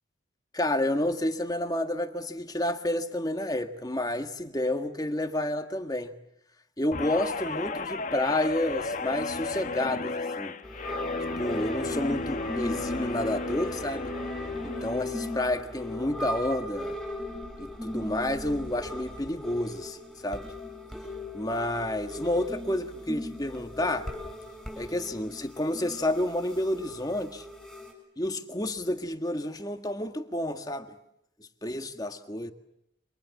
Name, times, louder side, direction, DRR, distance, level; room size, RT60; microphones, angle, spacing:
voice 1, 0.5-6.1 6.8-10.6 11.4-14.1 14.6-17.0 17.6-20.5 21.3-24.1 24.8-27.5 28.2-31.0 31.6-32.5, left 1 dB, 20° left, 6 dB, 1.7 m, -30 dB
Guitar, 6.9-15.5 15.9-16.2, left 3 dB, 40° left, 1.2 m, -34 dB
sound 1, 10.6-27.9, left 1 dB, ahead, 7.5 m, -38 dB
29.5 x 26.0 x 7.2 m, 0.80 s
head